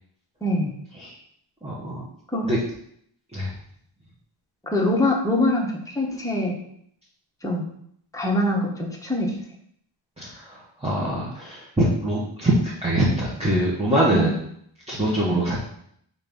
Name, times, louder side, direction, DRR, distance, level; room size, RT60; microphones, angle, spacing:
voice 1, 0.4-0.7 2.3-2.5 4.6-6.6 7.4-7.7 8.1-9.3 14.1-14.3 15.3-15.4, left 1 dB, 5° left, -2 dB, 1.3 m, -23 dB
voice 2, 1.6-2.0 2.4-2.6 3.3-3.5 10.2-14.3 14.9-15.6, right 1 dB, 10° right, -7 dB, 1.5 m, -23 dB
4.3 x 4.2 x 5.4 m, 0.68 s
wide cardioid pair, 95°, 48 cm